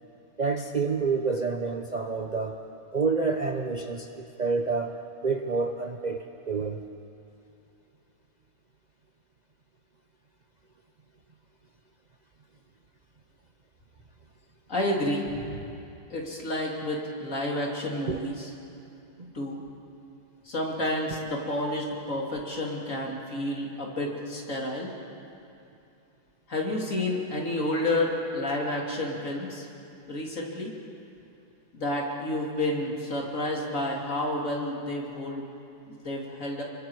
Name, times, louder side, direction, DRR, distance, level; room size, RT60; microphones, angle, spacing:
voice 1, 0.4-2.6 2.9-6.8 18.1-18.2 19.2-19.3, right 4 dB, 85° right, 3 dB, 0.4 m, -28 dB
voice 2, 14.7-15.6 16.1-18.5 19.3-19.6 20.4-24.9 26.5-29.7 30.1-30.7 31.7-35.4 35.9-36.6, left 1 dB, 40° left, -1 dB, 3.2 m, -30 dB
27.0 x 24.5 x 4.8 m, 2.7 s
omnidirectional pair, 2.2 m